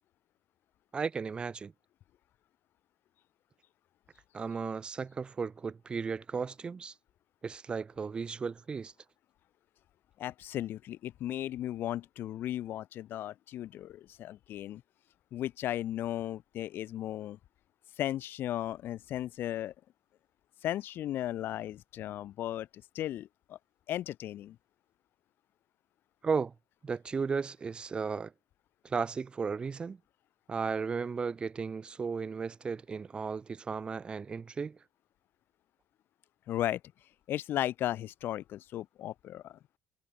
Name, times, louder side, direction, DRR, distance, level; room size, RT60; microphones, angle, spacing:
voice 1, 0.9-1.7 4.3-6.9 7.4-8.9 26.2-26.5 26.8-28.3 28.8-30.0 30.5-34.8, right 5 dB, 20° right, 1.9 m, -35 dB
voice 2, 10.2-14.8 15.3-17.4 18.0-19.7 20.6-22.7 22.9-23.6 23.9-24.6 36.5-36.8 37.3-39.6, left 12 dB, 50° left, 6.4 m, -35 dB
cardioid pair, 165°, 5 cm